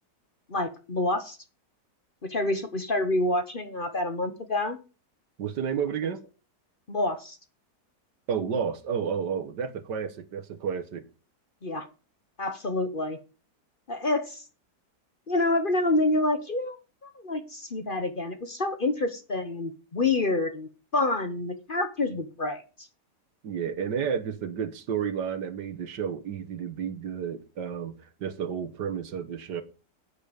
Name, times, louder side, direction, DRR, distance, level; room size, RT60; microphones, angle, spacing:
voice 1, 0.5-1.4 2.2-4.8 6.9-7.4 11.6-11.9 12.4-13.2 13.9-14.4 15.3-22.9, left 2 dB, 35° left, 1.1 m, -28 dB
voice 2, 5.4-6.2 8.3-11.0 23.4-27.9 28.2-29.6, right 7 dB, 85° right, 1.9 m, -31 dB
10.0 x 8.8 x 5.2 m
omnidirectional pair, 1.8 m